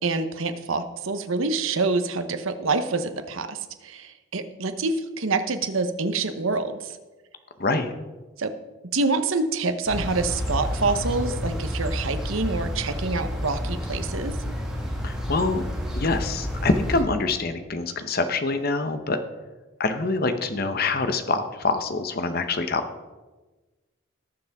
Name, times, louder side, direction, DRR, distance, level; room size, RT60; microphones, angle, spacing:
voice 1, 0.0-7.0 8.4-8.5 8.9-14.4, right 3 dB, 75° right, 9 dB, 0.9 m, -26 dB
voice 2, 7.6-7.9 15.0-15.6 16.0-19.2 19.8-22.8, left 3 dB, 45° left, 8 dB, 0.9 m, -25 dB
sound 1, 9.9-17.0, equal, 5° right, 1.7 m, -30 dB
18.5 x 7.2 x 3.6 m, 1.2 s
head